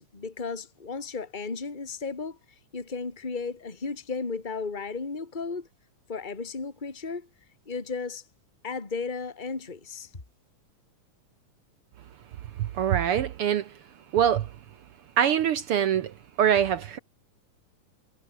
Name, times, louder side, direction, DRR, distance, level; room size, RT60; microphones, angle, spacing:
voice 1, 0.0-2.4 2.7-5.7 6.1-7.3 7.7-8.2 8.6-10.1, left 4 dB, 15° left, 2.5 m, -34 dB
voice 2, 12.6-13.7 14.1-14.5 15.2-17.0, right 9 dB, 70° right, 1.3 m, -24 dB
omnidirectional pair, 3.6 m